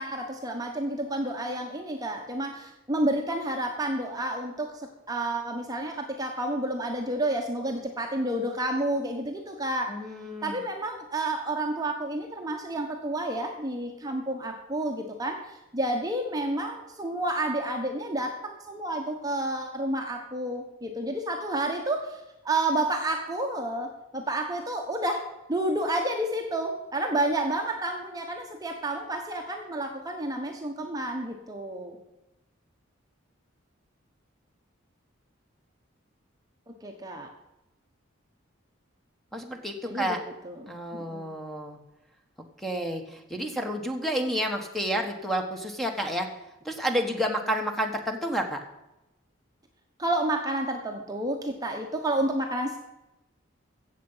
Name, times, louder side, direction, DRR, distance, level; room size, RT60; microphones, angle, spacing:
voice 1, 0.0-9.9 10.4-32.0 36.7-37.3 39.9-40.2 40.4-41.3 50.0-52.8, right 1 dB, 20° right, 2 dB, 1.1 m, -30 dB
voice 2, 9.9-10.6 39.3-40.2 40.7-41.8 42.6-46.3 46.6-48.6, equal, ahead, 4 dB, 1.3 m, -30 dB
16.0 x 7.3 x 5.7 m, 0.94 s
head